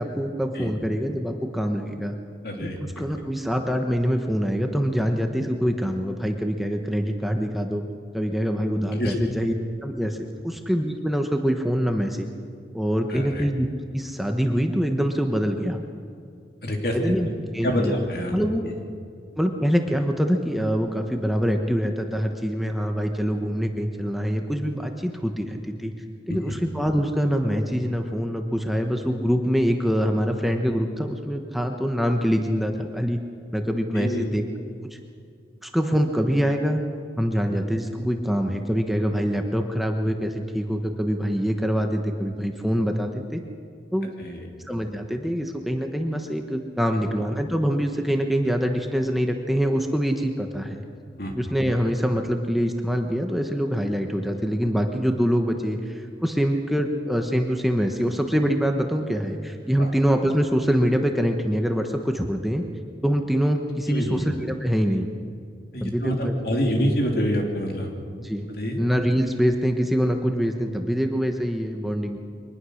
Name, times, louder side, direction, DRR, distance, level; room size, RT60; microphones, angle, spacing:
voice 1, 0.0-2.1 2.6-7.8 8.1-9.5 9.8-10.2 10.4-12.3 12.7-15.8 16.9-17.3 17.5-18.7 19.4-25.9 26.3-33.2 33.5-34.4 34.9-35.0 35.6-36.8 37.2-43.4 43.9-44.1 44.7-50.8 51.3-62.6 63.0-65.1 65.8-66.3 66.7-66.9 68.2-68.5 68.8-72.2, equal, ahead, 3 dB, 1.1 m, -24 dB
voice 2, 2.4-2.8 9.0-9.1 13.1-13.4 16.6-17.1 17.6-18.3 26.5-26.6 33.9-34.4 44.2-44.4 51.2-51.3 59.8-59.9 63.9-64.2 65.7-67.9 68.6-68.8, equal, 60° left, 1 dB, 3.1 m, -26 dB
23.5 x 19.5 x 6.5 m, 2.3 s
head